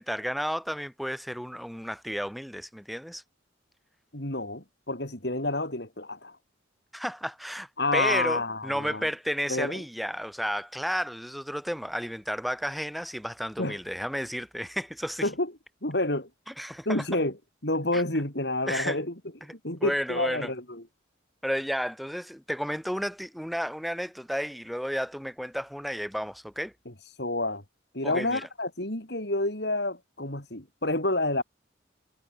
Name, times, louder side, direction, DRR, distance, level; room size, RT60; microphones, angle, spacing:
voice 1, 0.0-3.2 6.9-15.3 16.5-17.1 17.9-18.0 18.7-19.0 19.8-20.5 21.4-26.7 28.0-28.5, equal, ahead, 6.1 m, -32 dB
voice 2, 4.1-6.4 7.8-9.0 9.5-9.8 13.6-13.8 15.2-15.5 15.8-16.3 16.9-17.3 17.6-19.1 19.6-20.8 27.2-27.6 27.9-31.4, left 2 dB, 60° left, 4.5 m, -29 dB
head